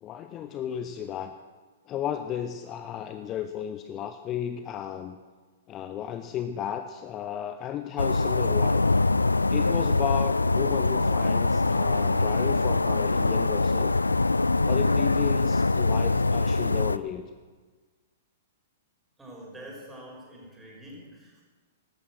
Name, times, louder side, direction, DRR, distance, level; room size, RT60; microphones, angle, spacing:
voice 1, 0.0-1.3 1.9-5.2 5.7-8.8 9.5-13.9 14.6-17.3, left 10 dB, 25° left, 9 dB, 0.7 m, -34 dB
sound 1, 8.0-17.0, left 3 dB, 80° left, 0.4 m, -23 dB
voice 2, 19.2-21.4, right 1 dB, 10° right, -3 dB, 5.8 m, -45 dB
15.5 x 12.5 x 6.4 m, 1.4 s
figure-of-eight pair, 110°, 0 cm